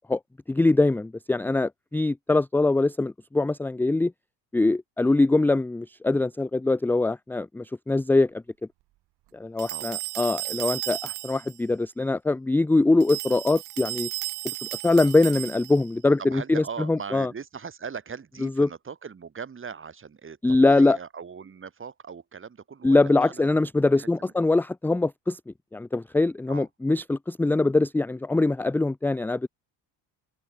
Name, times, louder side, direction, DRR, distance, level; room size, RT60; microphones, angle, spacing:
voice 1, 0.5-4.1 4.5-8.4 9.3-14.1 14.8-17.3 18.4-18.7 20.4-21.0 22.8-29.5, left 2 dB, 5° left, 0.5 m, -23 dB
sound 1, 9.6-11.6 13.0-15.9, right 19 dB, 75° right, 2.2 m, -34 dB
voice 2, 16.3-23.5 24.0-24.3 26.5-27.0, right 6 dB, 30° right, 7.7 m, -40 dB
open air
cardioid pair, 115°, 39 cm